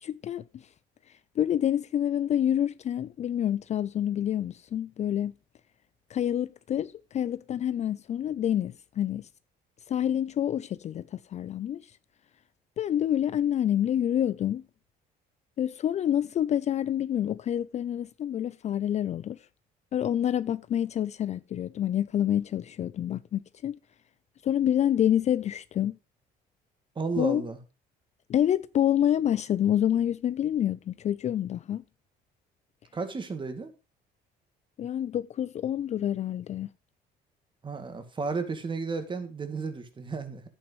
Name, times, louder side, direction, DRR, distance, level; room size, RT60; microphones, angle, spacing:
voice 1, 0.0-0.6 1.4-5.3 6.1-9.3 9.9-11.8 12.8-14.6 15.6-19.4 19.9-23.8 24.4-26.0 27.2-27.5 28.3-31.8 34.8-36.7, left 10 dB, 40° left, 0.4 m, -27 dB
voice 2, 27.0-27.6 32.9-33.7 37.6-40.4, right 4 dB, 30° right, 2.2 m, -33 dB
10.5 x 9.0 x 3.1 m
cardioid pair, 110°, 17 cm